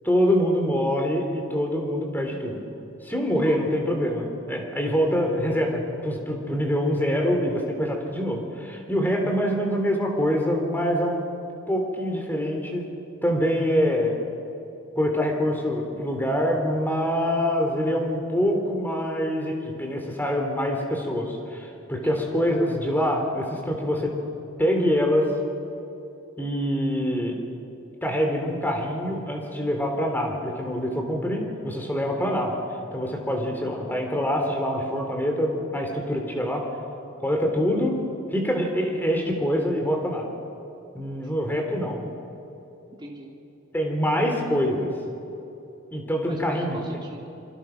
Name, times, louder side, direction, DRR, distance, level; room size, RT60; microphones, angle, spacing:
voice 1, 0.0-2.6 3.0-11.2 11.7-12.8 13.2-14.1 15.0-24.1 24.6-25.3 26.4-27.4 28.0-32.6 32.9-36.6 37.2-38.0 38.3-40.3 40.9-42.0 43.7-44.9 45.9-46.8, equal, 10° left, 2 dB, 3.6 m, -25 dB
voice 2, 42.9-43.3 46.3-47.3, right 1 dB, 20° right, -2 dB, 2.6 m, -41 dB
27.5 x 25.5 x 6.1 m, 2.8 s
head